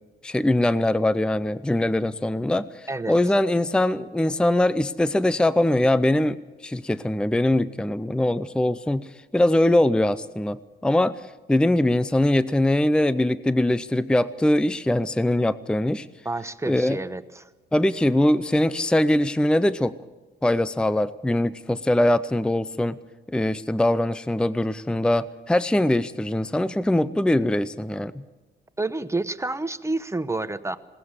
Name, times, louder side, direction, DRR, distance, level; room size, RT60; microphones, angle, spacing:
voice 1, 0.2-6.4 6.6-9.1 9.3-11.2 11.5-16.1 16.7-17.0 17.7-19.9 20.4-23.0 23.3-28.2, left 1 dB, 5° left, 16 dB, 0.6 m, -22 dB
voice 2, 16.2-17.5 28.8-30.8, right 2 dB, 15° right, 12 dB, 0.9 m, -29 dB
20.5 x 18.0 x 7.3 m, 1.2 s
cardioid pair, 90°, 20 cm